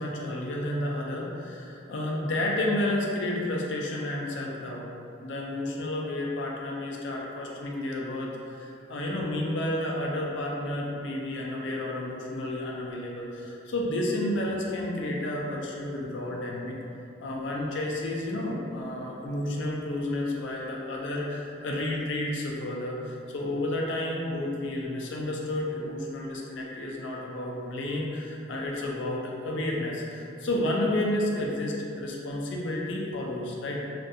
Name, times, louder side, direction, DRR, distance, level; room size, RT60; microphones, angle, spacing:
voice 1, 0.0-4.9 5.2-33.8, left 1 dB, 70° left, -2 dB, 0.4 m, -31 dB
2.5 x 2.2 x 2.6 m, 2.6 s
head